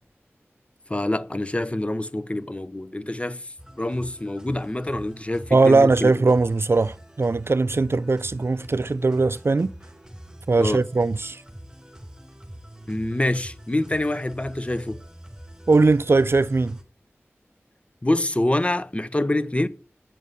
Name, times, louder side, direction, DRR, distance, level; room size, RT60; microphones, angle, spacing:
voice 1, 0.9-6.1 10.6-10.8 12.9-15.0 18.0-19.7, left 1 dB, 25° left, 1.0 m, -26 dB
sound 1, 3.6-16.8, right 1 dB, 15° right, 3.9 m, -44 dB
voice 2, 5.5-9.7 10.5-11.4 15.7-16.8, right 3 dB, 60° right, 0.5 m, -20 dB
9.2 x 7.4 x 8.2 m
wide cardioid pair, 45°, 5 cm